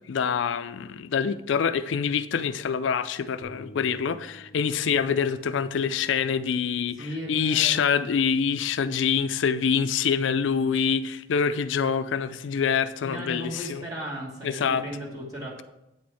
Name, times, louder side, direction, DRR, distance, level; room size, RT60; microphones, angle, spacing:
voice 1, 0.1-13.8 14.4-14.8, left 6 dB, 80° left, 12 dB, 0.4 m, -25 dB
Bass guitar, 3.4-9.7, left 1 dB, 35° left, 0.7 m, -53 dB
voice 2, 7.0-8.0 13.0-15.6, equal, 20° right, -6 dB, 1.5 m, -36 dB
8.8 x 4.3 x 4.6 m, 0.91 s
head